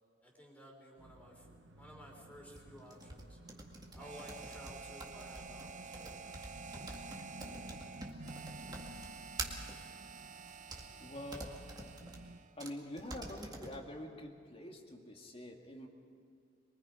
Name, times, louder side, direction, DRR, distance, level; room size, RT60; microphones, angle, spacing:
voice 1, 0.2-3.4 3.9-6.3, equal, 10° left, -1 dB, 3.8 m, -55 dB
sound 1, 1.0-12.4, right 1 dB, 80° right, 1.2 m, -54 dB
sound 2, 2.6-9.8 10.5-10.8 11.3-12.2 12.6-12.7 13.0-13.8, right 2 dB, 20° right, 2.0 m, -46 dB
Harmonica, 4.0-12.6, right 5 dB, 40° right, 0.6 m, -50 dB
voice 2, 11.0-11.6 12.6-15.9, left 1 dB, 30° left, 2 dB, 2.2 m, -46 dB
24.0 x 23.0 x 5.1 m, 2.4 s
head